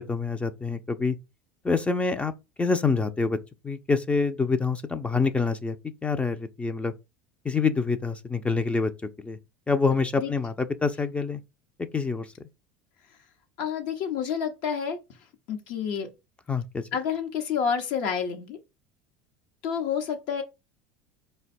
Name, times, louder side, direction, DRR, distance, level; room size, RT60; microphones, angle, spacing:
voice 1, 0.1-1.2 1.6-2.3 2.6-3.4 3.6-5.8 6.0-6.9 7.4-8.9 9.2-9.4 9.7-11.4 11.9-12.3 16.5-16.8, left 4 dB, 15° left, 0.5 m, -26 dB
voice 2, 13.6-15.0 15.5-16.1 16.9-18.6 19.6-20.4, left 7 dB, 65° left, 0.9 m, -29 dB
4.3 x 2.2 x 4.2 m
hypercardioid pair, 90°, 8 cm